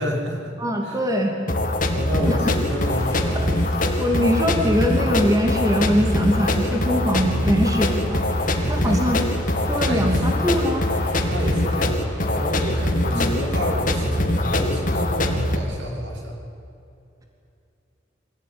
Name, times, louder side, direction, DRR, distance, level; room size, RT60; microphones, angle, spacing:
voice 1, 0.0-0.5 0.8-1.0 1.9-3.4 8.7-9.0 9.8-10.2 11.2-16.4, equal, 80° right, -1 dB, 5.6 m, -30 dB
voice 2, 0.6-1.4 2.3-2.7 3.3-3.5 4.0-8.2 8.7-9.2 9.7-10.8 13.1-13.3, equal, 20° right, 1 dB, 2.8 m, -22 dB
sound 1, 1.5-15.5, left 1 dB, 45° left, 2.3 m, -23 dB
sound 2, 2.5-15.3, left 1 dB, 15° left, 4.2 m, -39 dB
24.5 x 17.0 x 9.8 m, 2.7 s
head